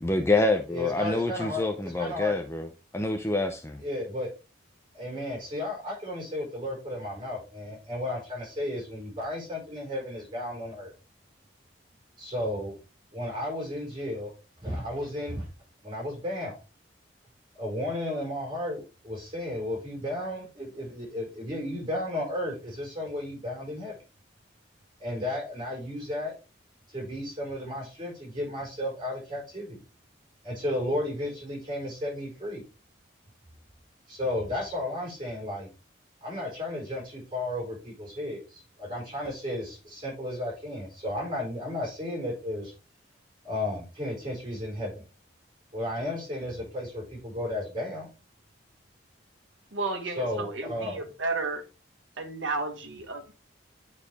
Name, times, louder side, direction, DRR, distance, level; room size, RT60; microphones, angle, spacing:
voice 1, 0.0-2.7 2.9-3.8, left 2 dB, 15° left, 5 dB, 0.5 m, -26 dB
voice 2, 0.7-2.4 3.8-4.3 4.9-10.9 12.2-12.8 13.1-14.3 14.6-15.5 15.8-16.6 17.6-24.0 25.0-26.3 26.9-29.8 30.4-32.6 34.1-35.7 36.2-42.7 43.4-45.0 45.7-48.1 50.2-51.0, left 1 dB, 20° right, -3 dB, 4.6 m, -33 dB
voice 3, 49.7-51.6 52.2-53.3, right 3 dB, 80° right, 3 dB, 1.4 m, -32 dB
8.7 x 4.8 x 3.5 m, 0.30 s
head